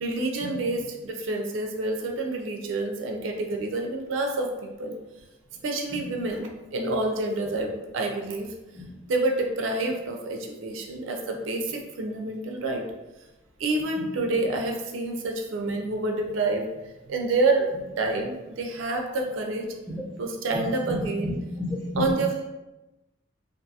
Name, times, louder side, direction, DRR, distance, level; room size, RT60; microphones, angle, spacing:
voice 1, 0.0-4.5 4.8-5.0 5.6-8.5 9.1-12.8 13.6-16.7 17.1-17.7 18.0-19.7 20.2-21.4 22.0-22.4, right 2 dB, 85° right, 2 dB, 0.4 m, -28 dB
voice 2, 20.9-22.1, left 1 dB, 5° right, -8 dB, 0.9 m, -31 dB
2.5 x 2.3 x 2.7 m, 1.0 s
head